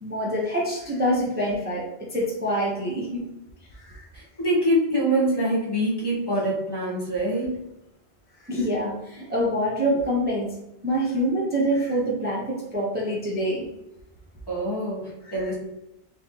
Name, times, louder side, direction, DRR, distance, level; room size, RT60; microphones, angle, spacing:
voice 1, 0.0-1.8 2.1-3.2 3.8-4.0 8.4-10.5 10.8-13.6 15.3-15.5, equal, 10° right, -5 dB, 0.8 m, -25 dB
voice 2, 4.1-7.5 14.5-15.5, right 1 dB, 25° left, -6 dB, 1.2 m, -25 dB
4.2 x 3.6 x 2.9 m, 0.90 s
omnidirectional pair, 1.1 m